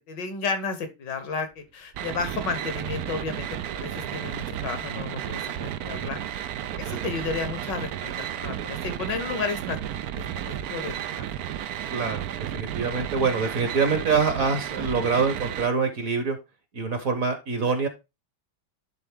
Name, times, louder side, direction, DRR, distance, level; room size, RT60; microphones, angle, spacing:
voice 1, 0.1-3.5 3.7-6.5 6.8-9.8 10.1-10.9, left 4 dB, 65° left, 9 dB, 1.7 m, -32 dB
sound 1, 1.9-15.7, right 10 dB, 75° right, 0.8 m, -33 dB
voice 2, 11.9-12.2 12.5-16.4 16.7-17.9, right 5 dB, 50° right, 7 dB, 1.3 m, -25 dB
10.5 x 3.7 x 3.6 m, 0.25 s
omnidirectional pair, 2.1 m